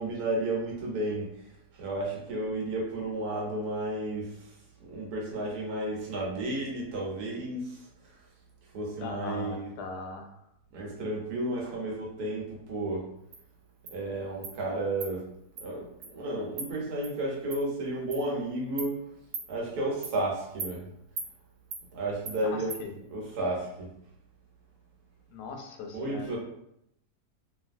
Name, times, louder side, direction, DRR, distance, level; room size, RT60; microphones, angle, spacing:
voice 1, 0.0-7.9 8.7-9.7 10.7-13.1 13.9-15.3 15.6-15.9 16.1-19.0 19.5-20.9 21.9-22.7 23.1-23.9 25.9-26.4, right 1 dB, 70° right, -3 dB, 1.3 m, -32 dB
voice 2, 9.0-10.4 22.4-22.9 25.3-26.4, left 3 dB, 90° left, 3 dB, 1.2 m, -40 dB
Insect, 13.3-13.4 13.9-14.0 14.4-14.6 15.0-15.1 15.6-15.7 16.0-16.1 16.6-16.7 17.0-17.1 17.5-17.6 18.1-18.2 18.8-18.9 19.3-19.5 20.0-20.2 20.6-20.7 21.2-21.3 21.7-21.8 22.3-22.4 22.7-22.8, right 4 dB, 90° right, 1.2 m, -37 dB
3.0 x 2.6 x 2.4 m, 0.77 s
omnidirectional pair, 1.7 m